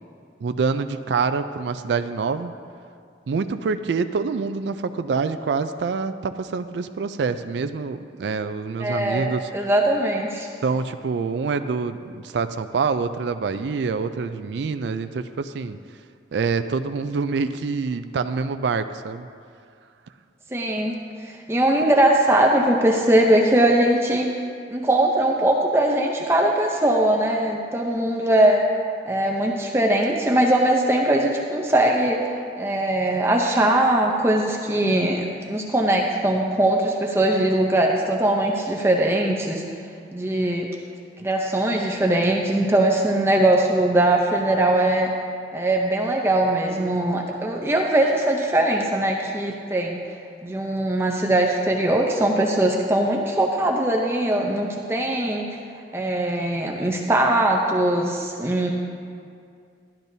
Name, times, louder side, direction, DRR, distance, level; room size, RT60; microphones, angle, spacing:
voice 1, 0.4-2.5 3.3-9.5 10.6-15.8 16.3-19.3, right 4 dB, 70° right, 9 dB, 0.4 m, -26 dB
voice 2, 8.8-10.5 20.5-20.9 21.5-24.3 24.7-28.6 29.1-39.6 40.1-40.7 41.2-45.1 45.5-50.0 50.4-55.5 55.9-58.7, right 1 dB, 15° right, 0 dB, 0.6 m, -21 dB
12.0 x 11.5 x 2.7 m, 2.3 s
head